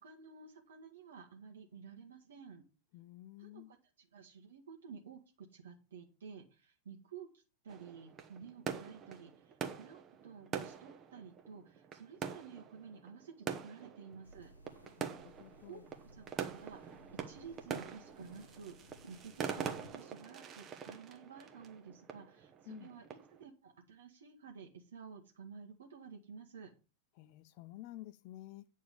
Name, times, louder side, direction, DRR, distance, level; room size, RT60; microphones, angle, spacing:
voice 1, 0.0-2.6 3.4-14.5 15.7-15.8 16.1-16.9 17.2-26.7, right 6 dB, 65° right, 1.6 m, -52 dB
voice 2, 2.9-3.7 15.0-15.8 22.7-22.9 27.2-28.7, left 15 dB, 45° left, 0.6 m, -51 dB
sound 1, 7.7-23.4, right 7 dB, 30° right, 1.3 m, -45 dB
sound 2, 14.2-19.9, left 1 dB, 80° left, 1.5 m, -58 dB
9.2 x 4.6 x 6.9 m
figure-of-eight pair, 90°, 0 cm